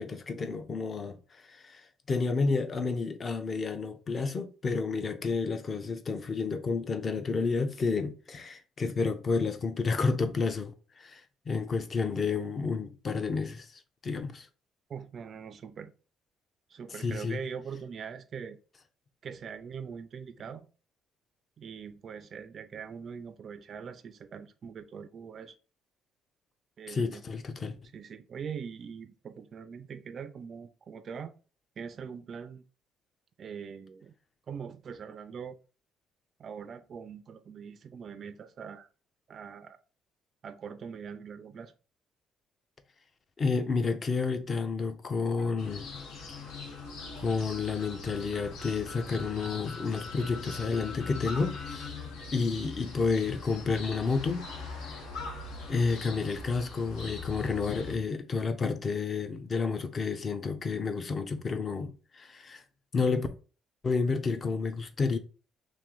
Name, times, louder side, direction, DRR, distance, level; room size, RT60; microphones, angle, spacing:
voice 1, 0.0-11.2 11.5-14.5 16.9-17.4 26.9-27.8 43.4-45.9 46.3-46.4 47.2-51.9 52.3-54.4 54.8-55.0 55.7-62.6 62.9-63.3 63.8-65.2, left 4 dB, 30° left, 0.5 m, -30 dB
voice 2, 14.9-15.9 16.7-18.6 19.2-20.7 21.6-25.5 26.8-27.2 27.9-31.3 31.8-32.6 33.4-34.1 34.5-35.6 36.4-38.9 39.3-39.8 40.4-41.7, right 6 dB, 40° right, 0.3 m, -42 dB
sound 1, 45.4-51.9, left 4 dB, 60° left, 1.3 m, -47 dB
sound 2, 45.6-57.9, left 4 dB, 90° left, 0.9 m, -41 dB
3.1 x 2.9 x 3.7 m
cardioid pair, 155°, 0 cm